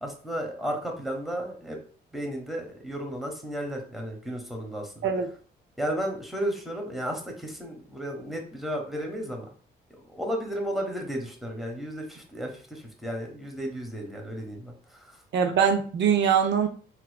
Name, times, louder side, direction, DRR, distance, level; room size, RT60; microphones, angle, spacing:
voice 1, 0.0-1.8 2.1-5.1 5.8-9.5 10.0-15.2, equal, ahead, 1 dB, 1.0 m, -33 dB
voice 2, 15.3-16.7, right 7 dB, 70° right, 6 dB, 0.5 m, -22 dB
4.1 x 2.6 x 2.2 m, 0.43 s
cardioid pair, 85°, 19 cm